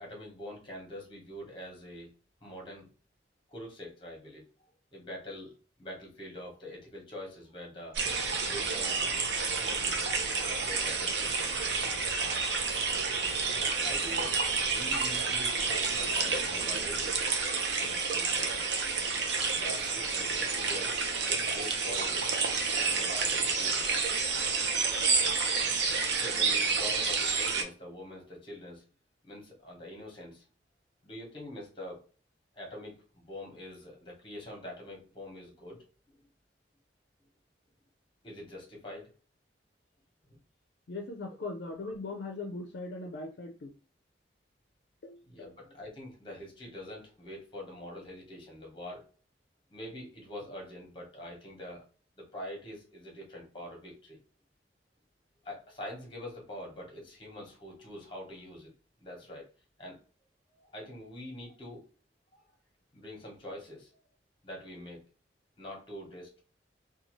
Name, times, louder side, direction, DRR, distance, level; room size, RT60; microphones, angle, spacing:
voice 1, 0.0-2.1 2.4-2.9 3.5-8.0 8.5-9.1 9.4-10.0 10.5-11.5 13.4-17.0 17.8-18.7 19.2-21.0 21.3-22.3 22.8-23.9 26.1-28.8 29.2-30.4 31.0-32.0 32.5-35.8 38.2-39.1 45.2-49.1 49.7-51.8 52.2-54.2 55.4-58.7 59.0-59.5 59.8-60.0 60.6-61.8 62.9-63.9 64.4-65.0 65.6-66.4, left 1 dB, 25° left, -1 dB, 1.0 m, -45 dB
sound 1, 7.9-27.6, right 4 dB, 65° right, 0.6 m, -29 dB
voice 2, 40.9-43.7 45.0-45.2, left 3 dB, 60° left, 1 dB, 0.4 m, -39 dB
2.7 x 2.3 x 3.0 m, 0.38 s
head